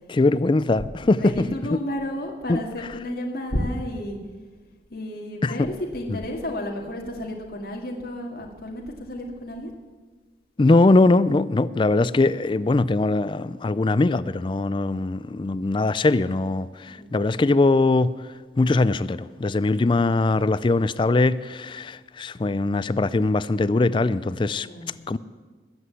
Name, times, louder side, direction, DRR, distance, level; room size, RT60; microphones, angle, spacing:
voice 1, 0.1-1.8 2.5-2.6 5.4-5.7 6.1-6.2 10.6-18.3 18.6-24.7 25.1-25.2, left 2 dB, 30° left, 0.4 m, -21 dB
voice 2, 1.0-4.2 4.9-9.7 16.8-17.1 24.5-25.1, left 1 dB, 60° left, 2.0 m, -32 dB
20.5 x 7.7 x 8.2 m
head